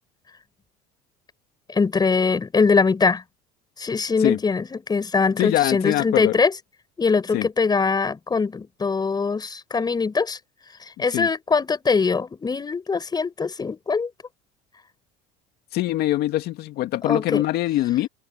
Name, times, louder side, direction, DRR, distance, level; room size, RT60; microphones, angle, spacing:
voice 1, 1.7-3.2 3.8-6.5 7.0-10.4 10.8-14.1 17.1-17.4, left 4 dB, 20° left, 4.9 m, -22 dB
voice 2, 5.4-6.4 7.3-7.5 11.1-11.3 15.7-18.1, left 15 dB, 60° left, 2.4 m, -23 dB
supercardioid pair, 100°, 18 cm